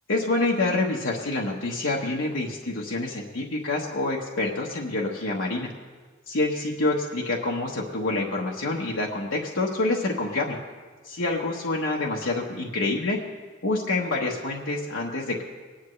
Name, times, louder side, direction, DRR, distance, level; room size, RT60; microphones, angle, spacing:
voice 1, 0.1-5.7 6.3-10.6 11.0-13.2 13.6-15.4, left 2 dB, 85° left, -3 dB, 1.2 m, -27 dB
21.5 x 10.0 x 3.2 m, 1.5 s
head